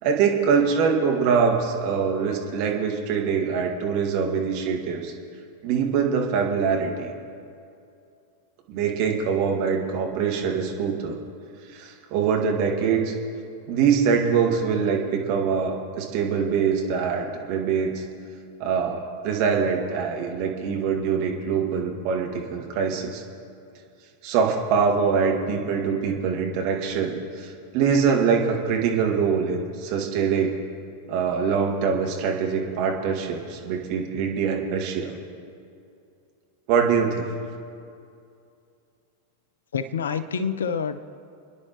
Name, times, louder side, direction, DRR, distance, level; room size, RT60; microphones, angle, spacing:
voice 1, 0.0-5.1 5.6-7.1 8.7-11.2 11.7-13.1 13.7-18.0 18.6-23.2 24.2-30.6 31.1-35.1 36.7-37.2, right 6 dB, 45° right, 0 dB, 2.1 m, -24 dB
voice 2, 39.7-41.0, left 6 dB, 65° left, 14 dB, 0.6 m, -27 dB
29.0 x 10.5 x 3.1 m, 2.5 s
figure-of-eight pair, 90°, 0 cm